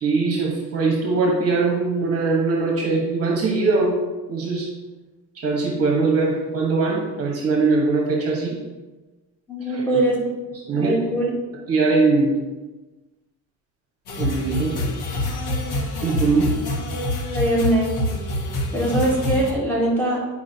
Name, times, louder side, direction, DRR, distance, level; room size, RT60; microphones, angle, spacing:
voice 1, 0.0-4.0 4.3-4.7 5.3-8.6 9.7-10.0 10.7-11.0 11.7-12.3 14.2-14.9 16.0-16.5, right 3 dB, 40° right, -1 dB, 1.2 m, -21 dB
voice 2, 9.5-10.3 10.7-11.3 17.3-18.0 18.7-20.3, right 1 dB, 5° left, -6 dB, 2.1 m, -22 dB
sound 1, 14.1-19.5, left 2 dB, 75° left, 1.3 m, -26 dB
9.3 x 4.8 x 2.8 m, 1.2 s
cardioid pair, 135°, 37 cm